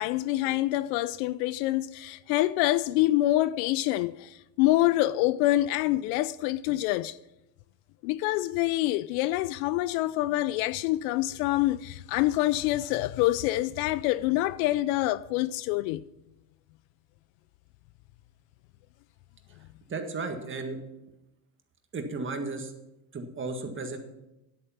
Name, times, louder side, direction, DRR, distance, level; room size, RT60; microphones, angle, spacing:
voice 1, 0.0-7.2 8.0-16.0, left 16 dB, 65° left, 0.5 m, -26 dB
voice 2, 19.9-20.8 21.9-22.7 23.1-24.0, right 3 dB, 25° right, 1.7 m, -34 dB
10.0 x 8.6 x 5.7 m
supercardioid pair, 105°, 50 cm